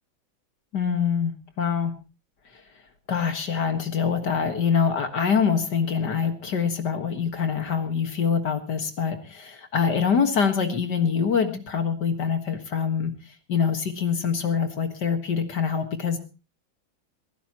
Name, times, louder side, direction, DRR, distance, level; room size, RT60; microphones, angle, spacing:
voice 1, 0.7-1.9 2.5-2.6 3.1-16.2, left 6 dB, 60° left, 7 dB, 2.2 m, -25 dB
21.5 x 15.5 x 3.0 m, 0.32 s
omnidirectional pair, 2.1 m